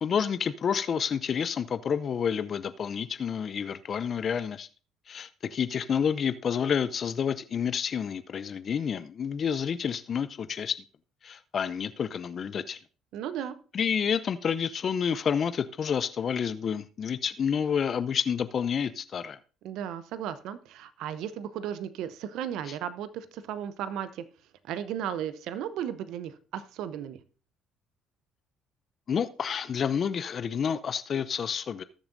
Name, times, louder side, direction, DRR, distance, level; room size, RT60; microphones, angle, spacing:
voice 1, 0.0-4.7 5.1-10.8 11.2-12.8 13.7-19.4 22.7-22.8 29.1-31.8, left 7 dB, 45° left, 13 dB, 0.6 m, -29 dB
voice 2, 13.1-13.6 19.6-24.2 24.6-27.2, right 9 dB, 65° right, 14 dB, 0.8 m, -35 dB
19.0 x 7.0 x 2.6 m, 0.38 s
hypercardioid pair, 55°, 0 cm